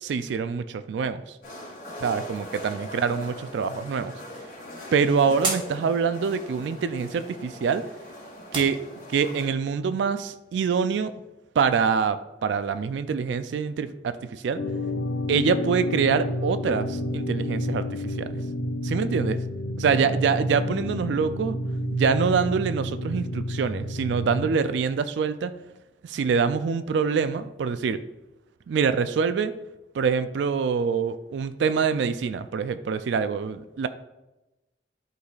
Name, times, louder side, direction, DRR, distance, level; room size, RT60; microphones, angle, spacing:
voice 1, 0.0-1.2 2.0-4.1 4.9-7.8 8.5-8.8 9.1-11.1 11.6-14.6 15.3-18.4 18.8-19.4 19.8-21.6 21.9-25.5 26.0-28.0 28.7-29.5 29.9-33.9, right 6 dB, 75° right, 11 dB, 0.3 m, -25 dB
sound 1, 1.4-9.5, equal, 45° left, 2.3 m, -41 dB
sound 2, 3.9-9.4, right 3 dB, 25° right, 1.0 m, -38 dB
sound 3, 14.6-24.5, left 1 dB, 90° left, 0.6 m, -30 dB
11.5 x 4.0 x 2.4 m, 1.0 s
head